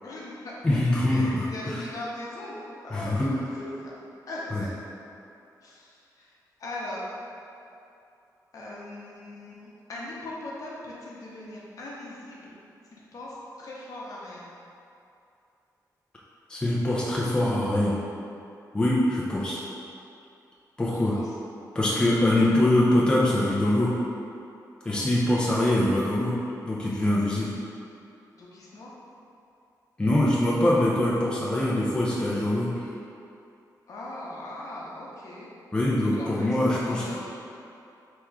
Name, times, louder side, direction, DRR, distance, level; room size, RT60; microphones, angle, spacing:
voice 1, 0.0-0.5 1.1-3.5 3.8-4.0 4.3-4.8 5.6-6.3 6.6-7.0 8.5-12.5 12.9-14.4 20.9-21.3 24.9-25.1 28.3-28.9 33.9-35.5 36.2-37.3, left 1 dB, 55° left, -5 dB, 0.8 m, -40 dB
voice 2, 0.6-1.8 2.9-3.3 4.5-4.6 16.5-18.0 18.7-19.6 20.8-21.2 21.7-23.9 24.8-26.3 26.6-27.5 30.0-32.7 35.7-37.2, left 1 dB, 10° left, -6 dB, 0.5 m, -23 dB
3.5 x 3.0 x 4.6 m, 2.6 s
wide cardioid pair, 165°, 7 cm